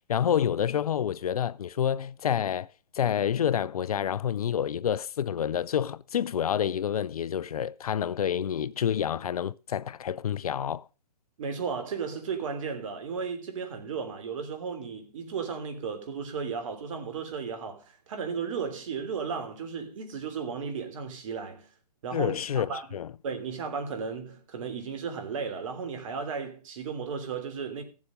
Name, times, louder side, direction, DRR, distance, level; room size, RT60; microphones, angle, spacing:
voice 1, 0.1-2.7 2.9-10.8 22.1-23.1, left 9 dB, 65° left, 0.5 m, -28 dB
voice 2, 11.4-21.7 22.0-23.0 23.2-27.8, right 5 dB, 50° right, 3.1 m, -34 dB
16.0 x 7.4 x 5.2 m
hypercardioid pair, 135°, 21 cm